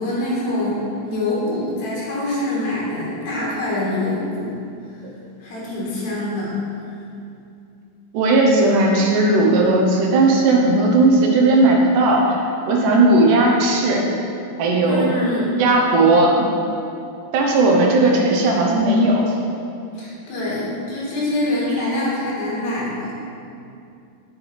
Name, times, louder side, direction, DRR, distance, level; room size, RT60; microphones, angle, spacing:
voice 1, 0.0-4.6 5.4-6.6 14.8-15.6 19.9-23.1, left 1 dB, 60° left, -6 dB, 2.4 m, -25 dB
voice 2, 8.1-12.2 12.7-14.0 14.6-15.1 15.6-16.5 17.3-19.3, right 2 dB, 75° right, -1 dB, 2.0 m, -16 dB
8.8 x 5.9 x 3.3 m, 2.5 s
omnidirectional pair, 4.3 m